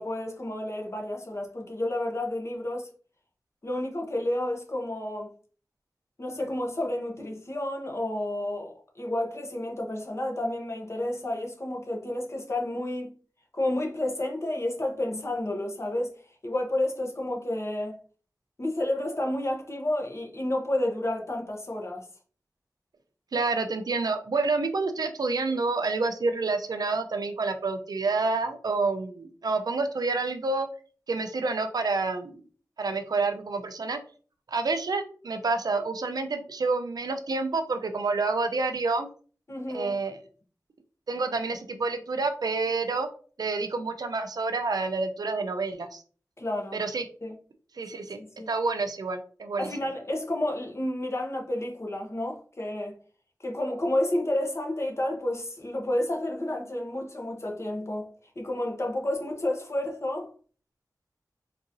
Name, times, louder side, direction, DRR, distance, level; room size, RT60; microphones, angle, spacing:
voice 1, 0.0-2.9 3.6-5.3 6.2-13.1 13.5-16.2 16.4-18.0 18.6-22.1 39.5-39.9 46.4-46.8 47.2-47.3 48.2-48.5 49.6-53.0 53.4-60.3, left 1 dB, 45° left, 0.8 m, -30 dB
voice 2, 23.3-30.7 31.1-32.4 32.8-34.0 34.5-39.1 39.7-40.2 41.1-43.1 43.4-46.0 46.7-47.0 47.8-49.7, right 3 dB, 90° right, 0.4 m, -28 dB
3.9 x 2.6 x 2.5 m
wide cardioid pair, 75°, 7 cm